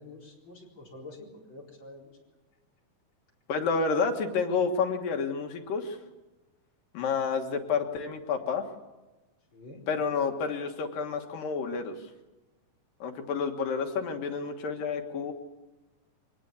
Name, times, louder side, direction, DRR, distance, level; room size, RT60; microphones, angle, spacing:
voice 1, 0.0-2.2 9.5-9.9, left 2 dB, 35° left, -2 dB, 4.9 m, -47 dB
voice 2, 3.5-6.0 6.9-8.6 9.9-11.9 13.0-15.3, left 5 dB, 90° left, 5 dB, 3.2 m, -29 dB
23.5 x 19.0 x 7.2 m, 1.1 s
omnidirectional pair, 3.9 m